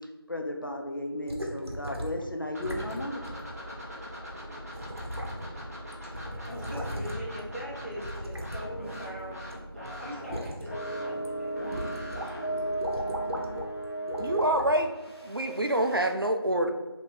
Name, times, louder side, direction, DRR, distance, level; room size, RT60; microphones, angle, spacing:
voice 1, 0.3-3.2, left 1 dB, 55° left, 2 dB, 0.5 m, -34 dB
sound 1, 1.3-2.2 2.6-3.0 3.2-3.4 4.3-4.4 4.7-5.7 5.9-7.4 8.0-9.5 9.9-10.6 11.1-11.3 11.7-12.3 12.6-13.7 14.1-14.8 15.4-15.5, equal, 80° right, 0.9 m, -37 dB
sound 2, 2.5-13.4, equal, 40° right, 0.8 m, -42 dB
voice 2, 6.5-11.9 12.1-12.8, equal, 30° left, -8 dB, 1.0 m, -42 dB
sound 3, 8.6-9.4 9.7-10.0 10.7-16.1, right 1 dB, 85° left, 1.1 m, -36 dB
voice 3, 14.2-14.9 15.2-16.7, right 1 dB, 60° right, 5 dB, 0.4 m, -26 dB
2.9 x 2.8 x 3.6 m, 1.2 s
figure-of-eight pair, 175°, 13 cm